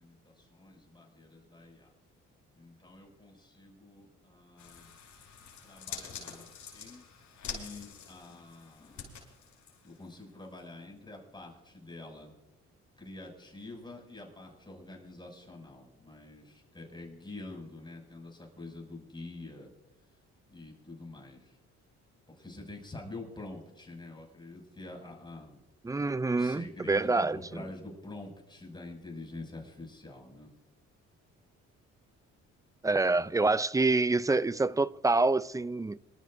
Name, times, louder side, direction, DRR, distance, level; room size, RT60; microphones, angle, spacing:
voice 1, 0.0-1.9 2.6-4.9 5.6-6.5 6.7-7.1 7.4-9.1 9.8-12.3 13.0-19.7 20.5-21.5 22.3-25.6 26.3-30.5, left 2 dB, 15° left, 6.6 m, -46 dB
sound 1, 4.6-10.2 10.6-10.7, left 7 dB, 65° left, 6.0 m, -46 dB
voice 2, 25.8-27.7 32.8-36.0, right 3 dB, 10° right, 0.4 m, -27 dB
26.0 x 13.5 x 2.6 m
cardioid pair, 90°, 30 cm